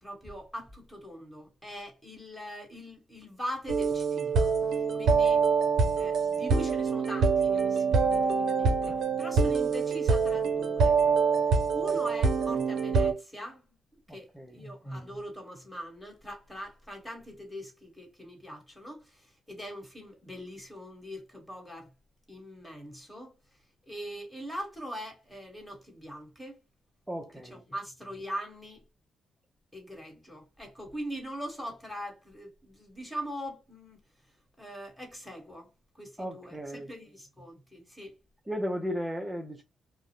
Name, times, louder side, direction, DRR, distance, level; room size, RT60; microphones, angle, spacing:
voice 1, 0.0-5.6 5.9-11.0 11.5-21.9 22.3-26.6 27.4-28.8 29.7-34.0 34.6-35.7 35.9-38.2, equal, 10° left, 1.4 m, -42 dB
sound 1, 3.7-13.1, right 5 dB, 70° right, 0.5 m, -25 dB
voice 2, 14.1-14.6 27.1-27.6 36.2-36.9 38.5-39.6, equal, 10° right, 0.6 m, -35 dB
2.4 x 2.1 x 3.0 m
cardioid pair, 75°, 0 cm